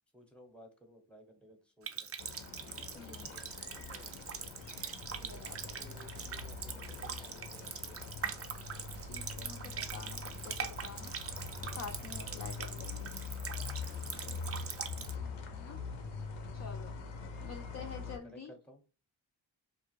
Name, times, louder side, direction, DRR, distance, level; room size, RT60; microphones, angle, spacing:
voice 1, 0.1-2.1 2.7-4.2 5.1-8.0 12.2-12.4 14.1-14.4 15.1-15.7 17.7-18.9, equal, ahead, 4 dB, 0.7 m, -58 dB
Water tap faucet, 1.8-15.1, right 7 dB, 35° right, 0.4 m, -43 dB
sound 1, 2.2-18.2, left 5 dB, 85° left, 0.7 m, -44 dB
voice 2, 2.9-3.3 5.2-6.0 9.0-11.1 11.6-13.1 15.0-15.1 15.5-15.8 16.5-17.0 17.4-18.5, left 6 dB, 35° left, 3 dB, 0.4 m, -48 dB
sound 2, 3.7-14.9, right 5 dB, 85° right, 0.6 m, -59 dB
2.4 x 2.1 x 3.0 m, 0.34 s
cardioid pair, 50°, 47 cm